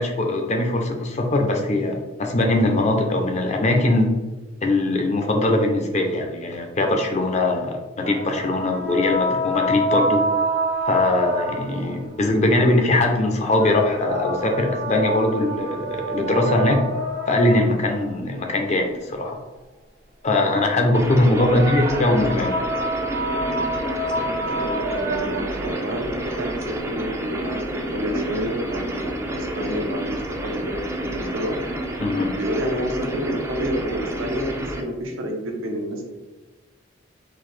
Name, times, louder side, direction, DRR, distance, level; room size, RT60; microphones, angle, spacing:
voice 1, 0.0-4.1 4.6-10.2 10.9-16.8 17.3-19.4 20.2-22.5 32.0-32.3, left 2 dB, 35° left, 3 dB, 0.5 m, -21 dB
sound 1, 8.0-12.0 13.5-18.0 21.2-25.6, right 1 dB, 60° right, 0.7 m, -27 dB
sound 2, 20.9-34.8, right 1 dB, 15° right, 0.4 m, -29 dB
voice 2, 21.3-21.7 24.3-31.6 32.4-36.0, equal, 90° right, 1 dB, 0.8 m, -29 dB
3.8 x 2.7 x 3.2 m, 1.2 s
head